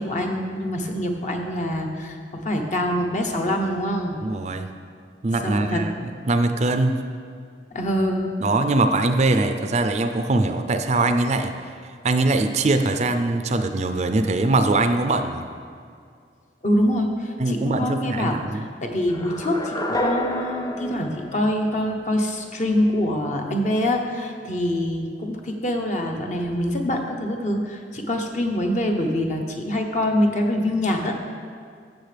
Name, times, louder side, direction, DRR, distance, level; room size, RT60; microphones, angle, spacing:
voice 1, 0.0-4.2 5.4-5.9 7.7-8.3 16.6-31.1, left 1 dB, 45° left, 2 dB, 0.9 m, -25 dB
voice 2, 4.2-4.7 5.2-5.9 6.3-7.0 8.4-11.5 12.0-15.5 17.4-18.6, right 2 dB, 40° right, 7 dB, 0.4 m, -22 dB
sound 1, 19.1-22.2, left 1 dB, 20° left, 0.5 m, -29 dB
14.5 x 6.6 x 3.4 m, 2.3 s
head